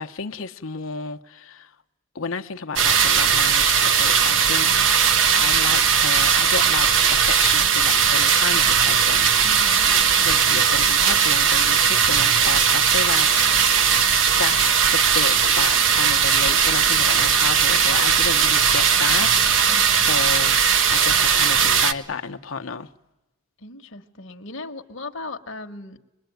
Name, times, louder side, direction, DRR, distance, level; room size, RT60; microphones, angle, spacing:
voice 1, 0.0-1.7 2.1-4.7 5.3-13.8 14.4-20.6 20.9-22.9, left 5 dB, 75° left, 0.9 m, -32 dB
sound 1, 2.8-21.9, right 7 dB, 60° right, 1.1 m, -18 dB
voice 2, 9.4-10.0 19.7-20.1 23.6-26.0, left 2 dB, 60° left, 1.2 m, -37 dB
25.0 x 21.0 x 9.3 m
head